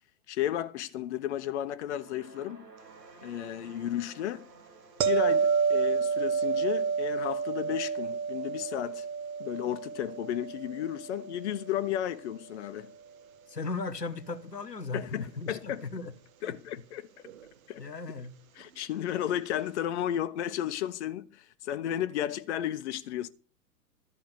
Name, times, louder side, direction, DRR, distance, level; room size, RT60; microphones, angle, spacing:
voice 1, 0.3-2.7 3.2-4.5 5.1-9.1 9.4-12.9 14.9-15.8 16.4-17.1 17.7-17.8 18.6-23.3, left 11 dB, 45° left, 0.7 m, -33 dB
sound 1, 1.7-10.1, right 4 dB, 80° right, 2.9 m, -56 dB
sound 2, 5.0-12.0 17.3-17.4, right 5 dB, 55° right, 1.3 m, -30 dB
voice 2, 13.5-16.1 16.4-16.5 17.8-18.3, left 3 dB, 90° left, 1.2 m, -37 dB
12.5 x 5.7 x 6.7 m
figure-of-eight pair, 115°, 48 cm